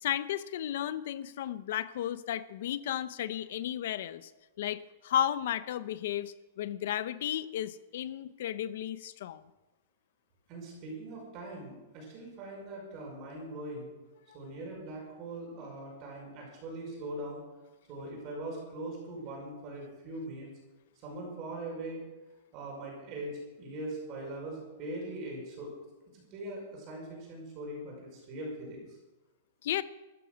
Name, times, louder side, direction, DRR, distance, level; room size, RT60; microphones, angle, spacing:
voice 1, 0.0-4.3 4.6-9.4 29.6-29.8, left 11 dB, 55° left, 14 dB, 0.8 m, -34 dB
voice 2, 10.5-13.9 14.3-17.4 17.9-20.5 21.0-22.0 22.5-25.7 26.1-29.0, right 1 dB, 30° right, -2 dB, 5.7 m, -41 dB
14.0 x 13.5 x 6.4 m, 1.1 s
supercardioid pair, 175°, 0 cm